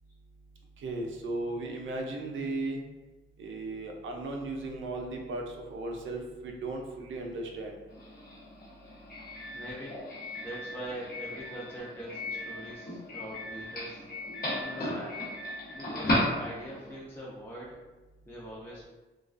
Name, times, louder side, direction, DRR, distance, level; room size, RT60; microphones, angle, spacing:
voice 1, 0.8-2.8 3.4-7.7, right 2 dB, 70° right, 2 dB, 0.5 m, -36 dB
Doorbell, 7.9-16.9, left 1 dB, 45° left, 0.8 m, -35 dB
voice 2, 9.5-10.0 10.4-14.1 14.5-15.2 15.7-17.8 18.3-18.8, right 1 dB, 10° left, -6 dB, 0.5 m, -42 dB
2.3 x 2.2 x 2.4 m, 1.2 s
cardioid pair, 85°, 21 cm